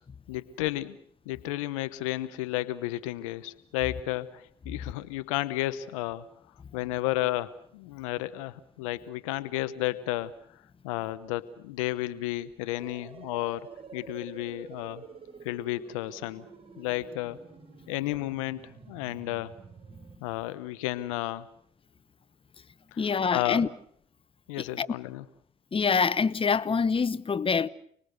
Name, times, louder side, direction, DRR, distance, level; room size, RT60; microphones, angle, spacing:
voice 1, 0.3-1.0 1.3-6.3 6.7-10.3 10.8-13.7 13.9-15.0 15.4-16.5 16.8-17.4 17.9-19.5 20.2-21.5 22.9-23.0 23.3-23.7 24.5-25.2, left 16 dB, 90° left, 1.0 m, -32 dB
sound 1, 12.8-20.2, right 5 dB, 35° right, 5.5 m, -48 dB
voice 2, 23.0-23.7 24.6-24.9 25.7-27.7, left 5 dB, 35° left, 1.1 m, -25 dB
29.0 x 21.0 x 6.7 m
hypercardioid pair, 55°, 16 cm